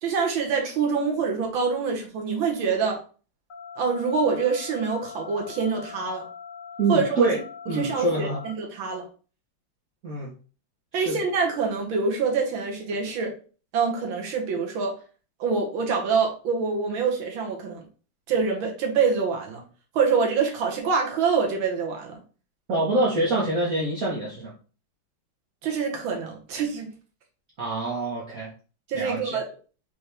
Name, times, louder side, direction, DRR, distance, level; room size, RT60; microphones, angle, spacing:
voice 1, 0.0-3.0 3.8-6.3 6.9-7.3 7.7-9.0 10.9-13.3 13.7-14.9 15.4-17.8 18.3-19.6 19.9-22.2 25.6-26.9 28.9-29.4, right 5 dB, 90° right, 1 dB, 1.8 m, -25 dB
sound 1, 3.5-8.5, left 6 dB, 55° left, 1.0 m, -42 dB
voice 2, 6.8-7.4 7.7-8.4 10.0-10.3 10.9-11.2 22.7-24.5 27.6-28.5 28.9-29.4, right 2 dB, 50° right, -5 dB, 1.4 m, -25 dB
5.2 x 3.0 x 3.3 m, 0.37 s
omnidirectional pair, 2.1 m